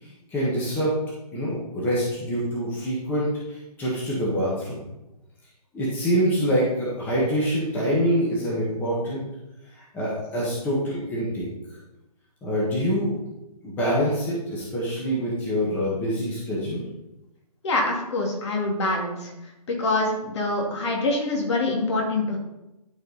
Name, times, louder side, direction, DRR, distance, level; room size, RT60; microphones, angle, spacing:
voice 1, 0.3-0.9 1.3-4.8 5.7-9.2 9.7-11.5 12.4-13.1 13.6-16.8, equal, 10° left, -6 dB, 1.5 m, -25 dB
voice 2, 17.6-19.3 19.7-22.4, left 2 dB, 45° left, 0 dB, 2.4 m, -25 dB
12.0 x 4.6 x 4.2 m, 0.93 s
hypercardioid pair, 155°, 20 cm